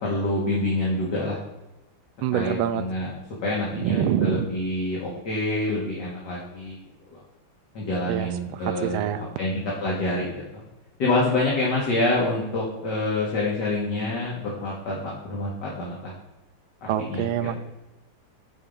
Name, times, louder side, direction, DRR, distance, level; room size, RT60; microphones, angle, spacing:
voice 1, 0.0-1.4 2.3-3.1 3.4-6.8 7.1-7.2 7.7-9.1 9.4-9.5 9.8-10.4 11.0-16.1 16.8-17.2, left 2 dB, 55° left, -4 dB, 2.1 m, -27 dB
voice 2, 2.2-2.9 3.7-4.5 8.1-9.3 16.9-17.6, right 9 dB, 75° right, 10 dB, 1.4 m, -26 dB
8.6 x 4.6 x 5.4 m, 1.0 s
omnidirectional pair, 2.4 m